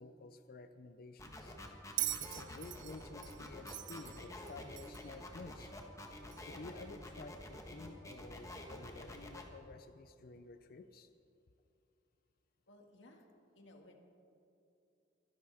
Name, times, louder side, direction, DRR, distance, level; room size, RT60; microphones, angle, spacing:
voice 1, 0.0-1.6 2.2-5.7 6.5-11.1, left 3 dB, 50° left, 10 dB, 0.5 m, -52 dB
sound 1, 1.2-9.4, left 1 dB, 15° left, 1.4 m, -49 dB
Bell, 2.0-5.2 6.3-6.4, right 15 dB, 75° right, 0.6 m, -41 dB
voice 2, 12.7-13.2 13.5-13.9, left 1 dB, 75° left, 2 dB, 1.9 m, -59 dB
23.5 x 11.0 x 3.5 m, 2.8 s
head